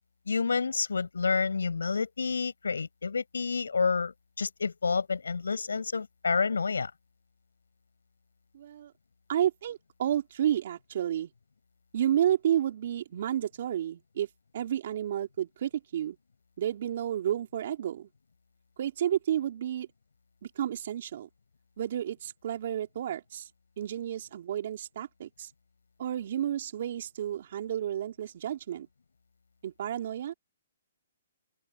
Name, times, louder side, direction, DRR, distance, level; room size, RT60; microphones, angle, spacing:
voice 1, 0.3-4.1 4.4-6.9, left 5 dB, 85° left, 6.7 m, -29 dB
voice 2, 8.5-8.9 9.3-11.3 11.9-14.3 14.5-16.2 16.6-18.1 18.8-19.9 20.5-21.3 21.8-23.5 23.8-25.5 26.0-28.9 29.6-30.3, right 10 dB, 55° right, 3.1 m, -31 dB
open air
hypercardioid pair, 140°, 0 cm